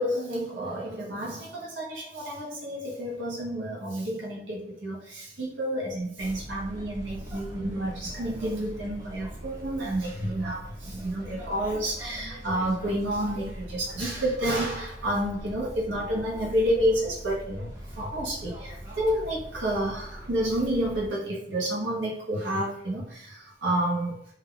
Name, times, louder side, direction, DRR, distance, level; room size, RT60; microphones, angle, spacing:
voice 1, 0.0-17.7 18.0-24.2, right 1 dB, 85° right, -3 dB, 0.8 m, -30 dB
sound 1, 6.2-21.1, equal, 15° right, 0.7 m, -42 dB
2.3 x 2.2 x 3.6 m, 0.65 s
head